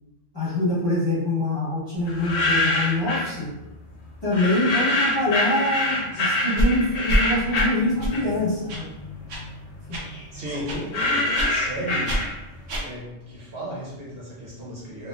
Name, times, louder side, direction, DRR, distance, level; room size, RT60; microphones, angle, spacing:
voice 1, 0.3-3.5 4.2-8.9 9.9-10.0, left 1 dB, 25° left, -10 dB, 1.0 m, -24 dB
sound 1, 2.1-3.3 4.3-8.5 8.9-12.6, left 2 dB, 70° left, 0.9 m, -25 dB
sound 2, 6.6-6.7 7.1-7.2 7.5-7.6 8.0-8.1 8.7-8.8 9.3-9.4 9.9-10.0 10.7-10.8 11.3-11.5 12.1-12.2 12.7-12.8, equal, 90° right, 1.0 m, -24 dB
voice 2, 10.3-12.3 12.8-15.1, equal, 55° right, -6 dB, 0.9 m, -34 dB
2.9 x 2.2 x 2.3 m, 0.97 s
omnidirectional pair, 1.2 m